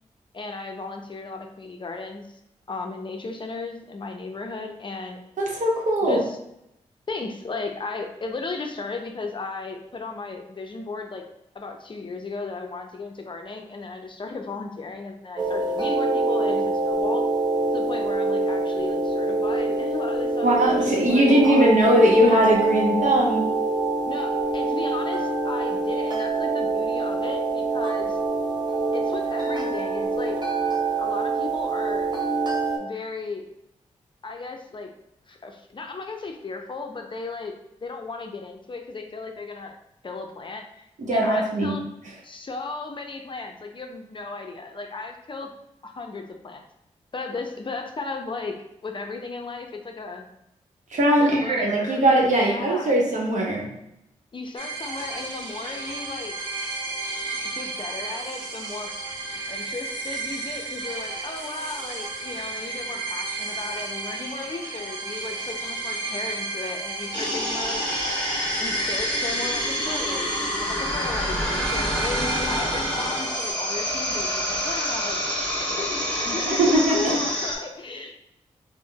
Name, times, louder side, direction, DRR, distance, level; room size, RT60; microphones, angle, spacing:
voice 1, 0.3-2.3 2.7-5.2 6.0-6.4 7.1-11.2 11.5-17.3 17.7-21.7 24.0-28.2 28.9-30.4 31.0-32.1 32.8-33.5 34.2-34.9 35.3-37.5 37.8-39.7 40.0-41.8 42.2-45.5 45.8-46.6 47.1-50.3 51.2-52.0 52.4-52.9 54.3-56.4 57.5-58.9 59.5-67.8 68.6-78.1, left 3 dB, 40° left, 3 dB, 0.5 m, -35 dB
voice 2, 5.4-6.2 20.4-23.4 41.0-41.7 50.9-53.7 76.5-77.2, right 1 dB, 65° right, -2 dB, 0.9 m, -20 dB
sound 1, 15.4-32.8, right 3 dB, 30° right, 0.7 m, -25 dB
sound 2, 54.6-73.5, right 3 dB, 90° right, 0.6 m, -33 dB
sound 3, 67.1-77.6, equal, 10° left, 1.2 m, -27 dB
3.7 x 2.1 x 2.2 m, 0.81 s
supercardioid pair, 40°, 14 cm